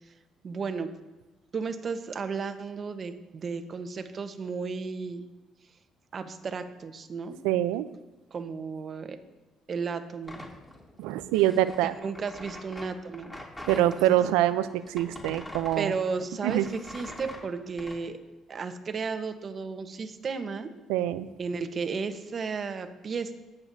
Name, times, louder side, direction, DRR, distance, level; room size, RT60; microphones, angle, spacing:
voice 1, 0.4-0.9 1.5-5.3 6.1-7.4 8.3-9.2 9.7-10.4 12.0-13.3 13.7-13.9 15.8-18.2 18.5-20.7 21.4-23.3, right 5 dB, 45° right, 8 dB, 1.1 m, -34 dB
voice 2, 7.4-7.9 11.0-11.9 13.7-15.9 16.4-16.7 20.9-21.3, right 13 dB, 90° right, 13 dB, 0.5 m, -25 dB
sound 1, 10.2-14.0 14.4-18.0, left 1 dB, 15° left, 2.9 m, -44 dB
20.0 x 6.9 x 2.7 m, 1.1 s
supercardioid pair, 70°, 0 cm